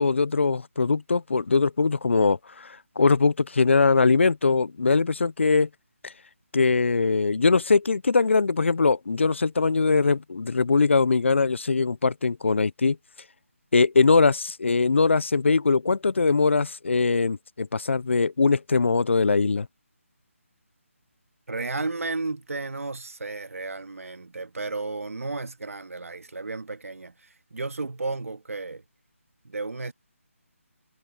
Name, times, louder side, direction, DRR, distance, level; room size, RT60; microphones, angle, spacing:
voice 1, 0.0-5.7 6.0-6.1 6.5-13.0 13.7-19.7, left 4 dB, 55° left, 0.4 m, -21 dB
voice 2, 21.5-28.8 29.4-29.9, right 3 dB, 75° right, 1.9 m, -33 dB
figure-of-eight pair, 180°, 8 cm